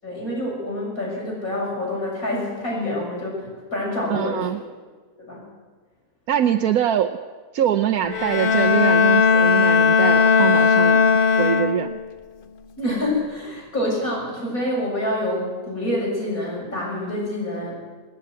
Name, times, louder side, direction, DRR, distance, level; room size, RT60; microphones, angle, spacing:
voice 1, 0.0-4.5 5.3-5.5 12.8-17.7, left 1 dB, 65° left, -3 dB, 7.4 m, -27 dB
voice 2, 4.1-4.6 6.3-7.2 7.5-11.9, right 10 dB, 80° right, 4 dB, 1.2 m, -23 dB
Bowed string instrument, 8.0-12.1, left 5 dB, 45° left, 0.8 m, -17 dB
27.0 x 10.0 x 9.5 m, 1.4 s
omnidirectional pair, 1.6 m